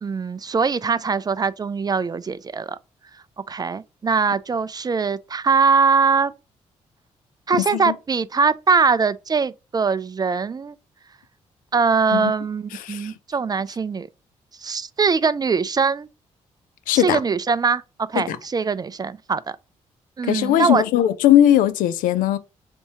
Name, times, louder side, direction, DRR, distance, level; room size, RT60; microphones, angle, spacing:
voice 1, 0.0-2.8 3.5-6.3 7.5-10.8 11.7-14.1 14.6-16.1 16.9-19.6 20.2-20.8, right 5 dB, 30° right, 0.3 m, -22 dB
voice 2, 12.8-13.1 16.9-17.2 18.3-18.4 20.3-22.4, left 12 dB, 80° left, 0.4 m, -18 dB
3.4 x 2.7 x 4.2 m
supercardioid pair, 50°, 14 cm